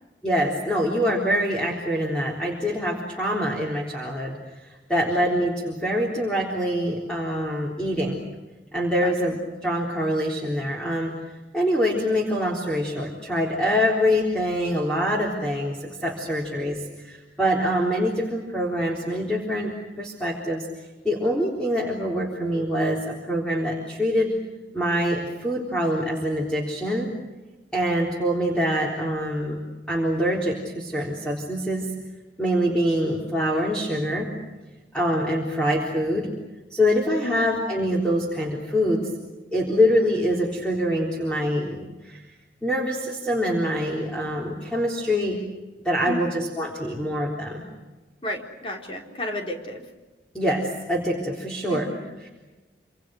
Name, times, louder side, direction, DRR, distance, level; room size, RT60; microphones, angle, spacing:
voice 1, 0.2-4.4 4.6-8.2 8.7-11.1 11.5-20.7 21.0-24.3 24.7-27.1 27.7-29.6 29.9-31.9 32.4-34.3 34.9-36.3 36.7-39.1 39.5-42.2 42.6-45.4 45.8-47.6 50.3-51.9, equal, 5° left, -3 dB, 3.7 m, -25 dB
voice 2, 48.2-49.8 51.7-52.1, left 1 dB, 30° left, 2 dB, 3.9 m, -32 dB
27.0 x 26.5 x 6.5 m, 1.2 s
head